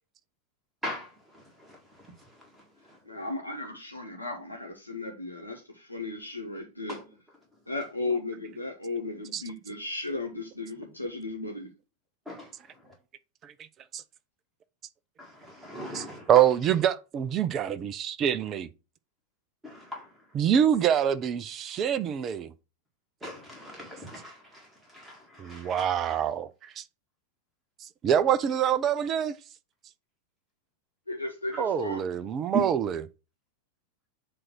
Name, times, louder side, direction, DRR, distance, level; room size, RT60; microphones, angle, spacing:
voice 1, 0.8-2.6 2.9-3.0 6.9-7.0 12.2-12.5 15.2-16.3 19.6-20.1 23.2-26.2, left 1 dB, 5° right, 1.6 m, -42 dB
voice 2, 3.0-7.0 7.7-11.7 31.1-32.0, left 2 dB, 85° left, 1.1 m, -35 dB
voice 3, 15.9-18.7 20.3-22.5 25.4-26.8 28.0-29.4 31.6-33.0, right 9 dB, 30° right, 0.5 m, -25 dB
7.7 x 2.6 x 5.9 m
figure-of-eight pair, 90°, 0 cm